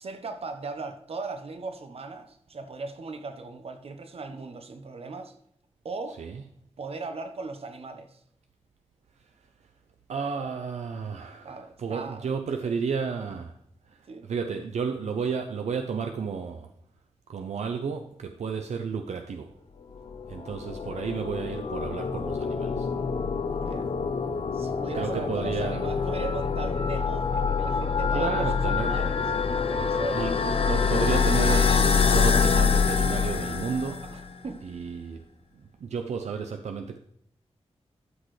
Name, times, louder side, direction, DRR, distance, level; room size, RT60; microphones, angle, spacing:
voice 1, 0.0-5.4 5.8-6.2 6.8-8.2 11.4-12.2 12.6-12.7 14.1-14.2 23.5-23.9 24.5-29.2 29.7-30.3 34.1-34.6, right 3 dB, 60° right, 1.1 m, -38 dB
voice 2, 10.1-13.6 13.9-16.7 17.3-19.6 20.3-22.9 24.9-26.0 28.1-29.0 30.1-34.1 34.6-35.2 35.5-37.0, right 6 dB, 85° right, 0.6 m, -32 dB
sound 1, 20.1-34.2, left 5 dB, 55° left, 0.7 m, -25 dB
12.5 x 6.2 x 3.2 m
wide cardioid pair, 105°, 11 cm